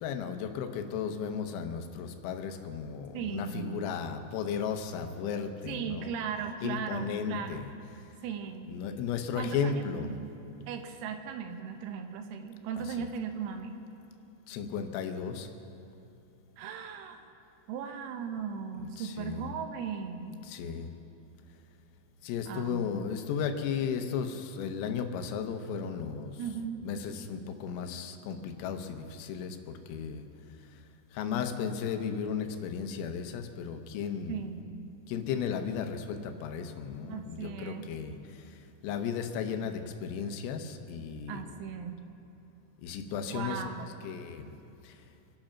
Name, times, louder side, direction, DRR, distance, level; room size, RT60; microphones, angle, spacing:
voice 1, 0.0-6.1 6.6-7.7 8.7-10.1 14.5-15.5 19.0-19.5 20.5-20.9 22.2-26.3 26.8-30.3 31.1-34.4 35.1-38.2 38.8-41.4 42.8-43.6 44.0-44.5 44.8-44.9, left 7 dB, 85° left, 6 dB, 3.6 m, -35 dB
voice 2, 3.1-3.8 5.7-7.6 8.2-8.7 9.4-10.3 10.7-13.8 16.6-17.2 17.7-20.4 22.5-22.9 26.4-26.9 34.3-35.0 37.0-37.9 41.3-42.0 43.3-43.9, right 7 dB, 90° right, 6 dB, 3.8 m, -37 dB
26.0 x 9.0 x 5.8 m, 2.8 s
omnidirectional pair, 5.9 m